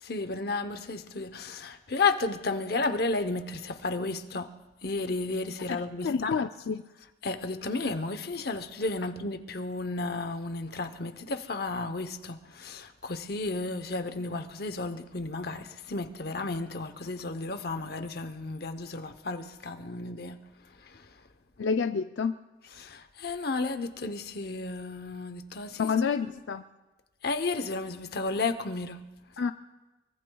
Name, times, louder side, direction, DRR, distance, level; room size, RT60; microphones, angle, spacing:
voice 1, 0.0-4.5 4.8-6.3 7.2-20.4 20.8-21.0 22.8-26.2 27.2-29.0, left 3 dB, 55° left, 0.8 m, -33 dB
voice 2, 5.7-6.8 21.6-22.4 25.8-26.6 29.4-29.5, left 5 dB, 80° left, 0.4 m, -29 dB
24.0 x 23.5 x 2.3 m
head